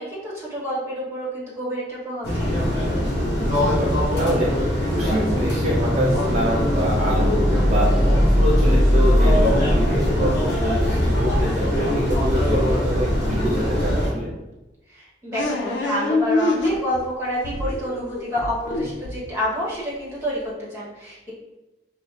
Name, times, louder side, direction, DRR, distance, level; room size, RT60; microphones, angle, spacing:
voice 1, 0.0-2.6 14.9-21.3, equal, 15° right, -7 dB, 1.0 m, -28 dB
sound 1, 2.2-14.1, equal, 60° left, 1.2 m, -20 dB
voice 2, 3.4-14.3, equal, 40° right, -6 dB, 0.5 m, -26 dB
sound 2, 15.3-17.1 17.4-19.7, left 2 dB, 80° left, 0.5 m, -25 dB
5.5 x 2.1 x 2.4 m, 1.0 s
head